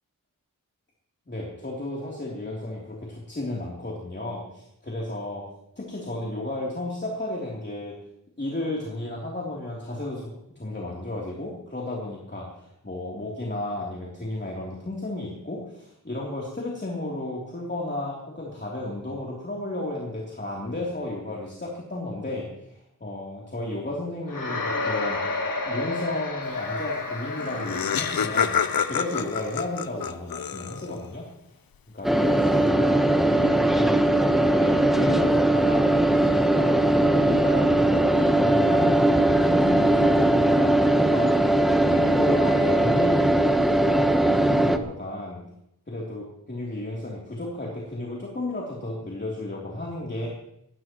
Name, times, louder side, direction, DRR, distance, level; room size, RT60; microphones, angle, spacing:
voice 1, 1.3-5.5 5.8-8.0 8.4-31.3 31.9-36.9 37.2-41.3 41.9-45.4 45.9-50.3, left 1 dB, 30° left, -4 dB, 3.3 m, -33 dB
sound 1, 24.3-29.7, left 3 dB, 70° left, 2.6 m, -31 dB
Laughter, 27.1-27.2 27.4-31.1, left 7 dB, 90° left, 0.7 m, -28 dB
sound 2, 32.0-44.8, right 1 dB, ahead, 1.1 m, -20 dB
20.5 x 16.5 x 3.1 m, 0.77 s
wide cardioid pair, 95°, 34 cm